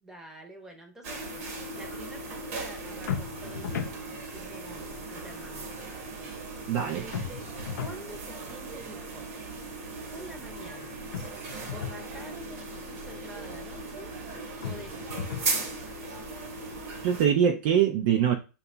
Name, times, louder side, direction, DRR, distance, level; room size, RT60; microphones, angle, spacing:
voice 1, 0.0-1.2 1.7-5.7 6.7-7.4 7.8-9.3 10.1-11.0 11.7-14.1 14.6-15.2, equal, 5° right, 0.8 m, -47 dB
sound 1, 1.0-17.3, right 3 dB, 50° right, 1.0 m, -38 dB
sound 2, 3.1-4.0 7.1-8.0 11.1-12.0 14.6-15.6, left 7 dB, 70° left, 0.6 m, -35 dB
voice 2, 6.7-7.1 17.0-18.3, right 8 dB, 35° right, 0.4 m, -23 dB
2.8 x 2.2 x 3.7 m
hypercardioid pair, 155°, 10 cm